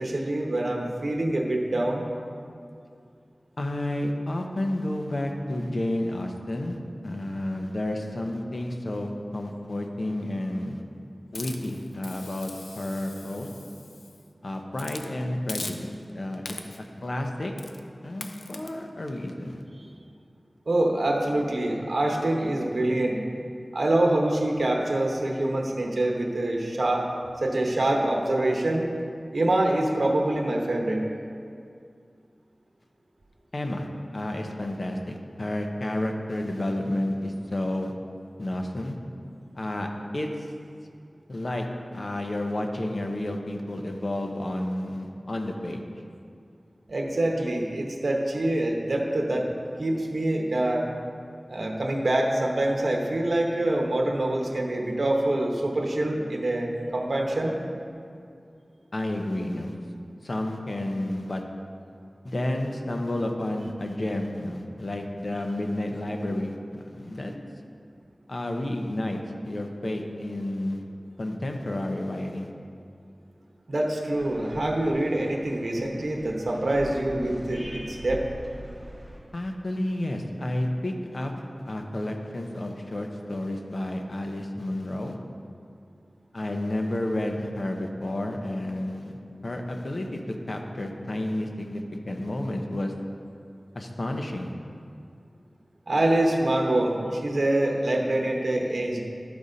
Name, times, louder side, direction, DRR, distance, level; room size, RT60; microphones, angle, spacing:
voice 1, 0.0-2.0 20.7-23.2 23.7-27.1 27.4-28.9 29.3-31.0 46.9-49.5 49.8-50.9 51.5-57.5 73.7-78.2 95.9-99.0, right 1 dB, 65° right, 0 dB, 1.0 m, -25 dB
voice 2, 3.6-6.8 7.0-10.8 11.3-13.5 14.4-17.5 18.0-19.6 33.5-33.9 34.1-37.9 38.4-38.9 39.5-39.9 40.1-40.3 41.3-41.7 41.9-45.8 58.9-59.7 60.2-61.4 62.2-66.5 66.9-67.3 68.3-70.8 71.2-72.5 79.3-81.3 81.7-85.2 86.3-90.2 90.5-92.9 93.7-94.5, left 1 dB, 55° left, 3 dB, 0.8 m, -31 dB
Hiss, 11.3-14.2 14.7-15.1 15.5-16.1 16.4-16.9 17.6-17.8 18.2-18.7, left 3 dB, 80° left, 0.5 m, -41 dB
sound 1, 74.1-79.2, right 1 dB, 10° right, 1.9 m, -42 dB
12.0 x 4.1 x 5.1 m, 2.4 s
wide cardioid pair, 75°, 0 cm